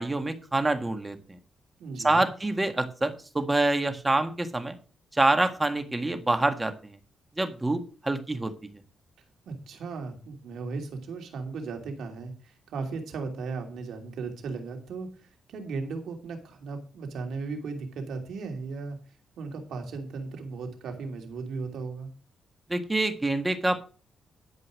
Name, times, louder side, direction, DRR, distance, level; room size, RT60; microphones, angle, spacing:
voice 1, 0.0-1.4 2.0-4.8 5.1-7.0 7.4-8.5 22.7-23.8, right 2 dB, 15° right, 8 dB, 1.6 m, -26 dB
voice 2, 1.8-2.3 9.5-19.0 19.4-22.1, right 4 dB, 80° right, 3 dB, 2.7 m, -36 dB
11.5 x 5.4 x 6.4 m, 0.37 s
cardioid pair, 90°, 0 cm